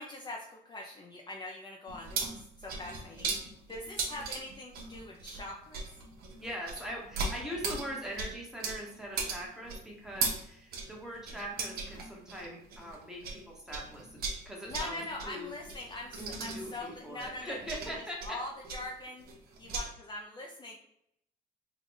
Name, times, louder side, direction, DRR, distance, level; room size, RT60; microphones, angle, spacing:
voice 1, 0.0-3.3 3.7-5.9 14.7-17.6 18.2-19.2 19.6-20.8, left 2 dB, 25° left, -1 dB, 0.5 m, -42 dB
sound 1, 1.9-13.4 13.7-19.8, right 4 dB, 65° right, 0.9 m, -38 dB
voice 2, 6.4-15.5 16.2-18.4, equal, 5° right, -2 dB, 1.1 m, -42 dB
3.7 x 2.3 x 3.7 m, 0.76 s
cardioid pair, 110°, 17 cm